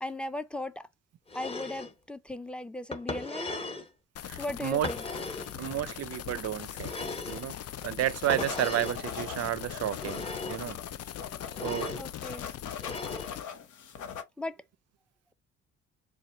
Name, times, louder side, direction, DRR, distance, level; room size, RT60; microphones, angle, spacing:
voice 1, 0.0-0.8 1.3-3.6 4.4-5.0 12.0-12.5 14.4-14.6, left 2 dB, 5° left, 0.5 m, -37 dB
sound 1, 1.3-1.9 2.9-3.9 4.8-5.5 6.8-7.5 8.3-9.0 9.9-10.6 11.5-12.0 12.8-13.3, left 2 dB, 20° left, 1.0 m, -37 dB
sound 2, 4.2-13.4, left 11 dB, 55° left, 0.5 m, -41 dB
voice 2, 4.2-4.9 5.6-7.6 7.8-10.8 11.6-12.0 13.1-13.2, right 12 dB, 55° right, 0.5 m, -32 dB
sound 3, 5.4-14.2, left 7 dB, 75° left, 1.1 m, -43 dB
4.3 x 2.3 x 3.9 m
cardioid pair, 90°, 30 cm